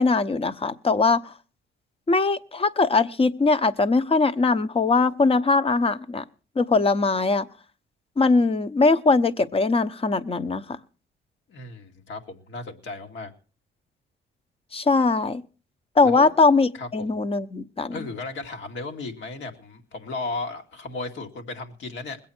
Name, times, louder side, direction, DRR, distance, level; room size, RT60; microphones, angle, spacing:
voice 1, 0.0-1.3 2.1-6.2 6.6-7.5 8.2-10.6 14.7-15.4 16.0-18.0, left 3 dB, 30° left, 13 dB, 1.0 m, -21 dB
voice 2, 11.5-13.3 16.0-16.3 16.7-17.2 17.9-22.2, left 3 dB, 70° left, 4 dB, 2.3 m, -35 dB
21.5 x 8.4 x 4.4 m, 0.37 s
cardioid pair, 90°, 20 cm